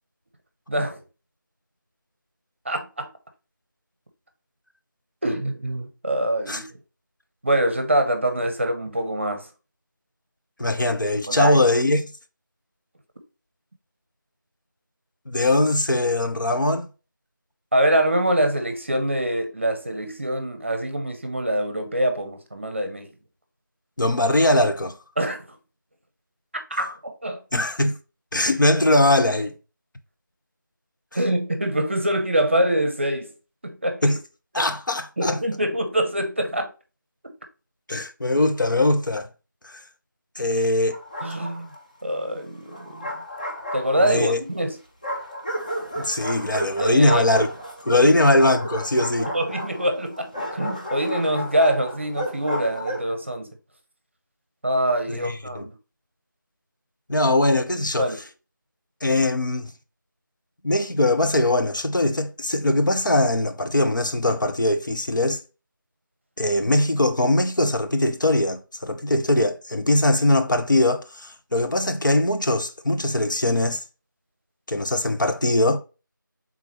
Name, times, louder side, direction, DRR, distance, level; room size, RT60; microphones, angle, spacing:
voice 1, 0.7-1.0 2.7-3.1 5.2-6.7 7.4-9.5 11.3-11.6 17.7-23.1 25.2-25.4 26.7-27.4 31.1-33.3 33.6-34.1 34.6-34.7 35.2-36.7 41.2-41.7 42.0-43.2 43.7-44.8 46.8-47.2 48.0-48.1 49.3-53.5 54.6-55.7 58.0-58.2 66.7-66.8, right 1 dB, 35° right, 0.7 m, -24 dB
voice 2, 10.6-12.1 15.3-16.9 24.0-25.0 27.5-28.0 28.3-29.5 34.0-34.2 34.5-35.4 37.9-39.3 39.6-39.7 40.4-41.0 44.0-44.4 46.0-47.5 47.8-49.3 55.1-55.7 57.1-58.1 59.0-59.7 60.6-65.4 66.4-73.8 74.7-75.8, left 1 dB, 65° left, 0.8 m, -21 dB
Bark, 40.9-41.8 42.7-44.3 45.0-53.1, equal, 20° left, 0.5 m, -32 dB
4.6 x 3.8 x 3.0 m
figure-of-eight pair, 170°, 11 cm